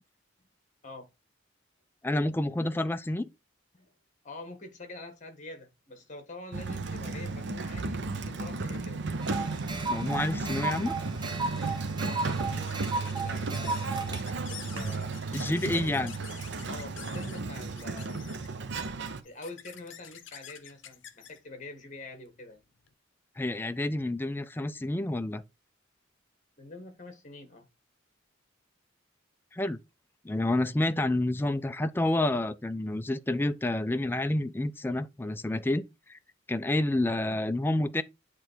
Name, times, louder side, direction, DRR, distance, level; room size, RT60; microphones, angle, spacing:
voice 1, 2.0-3.3 9.9-10.9 15.3-16.1 23.4-25.4 29.5-29.8 30.2-35.8 36.1-36.2 36.5-38.0, left 1 dB, 10° left, 0.3 m, -29 dB
voice 2, 4.2-9.0 12.0-15.1 15.5-16.1 16.7-18.2 19.2-22.6 26.6-27.7, left 2 dB, 40° left, 1.6 m, -46 dB
Sliding door, 6.5-19.2, right 3 dB, 65° right, 0.7 m, -34 dB
sound 1, 9.2-14.2, right 3 dB, 20° right, 0.9 m, -35 dB
sound 2, 11.2-22.9, left 9 dB, 70° left, 0.7 m, -50 dB
8.4 x 3.3 x 4.5 m
head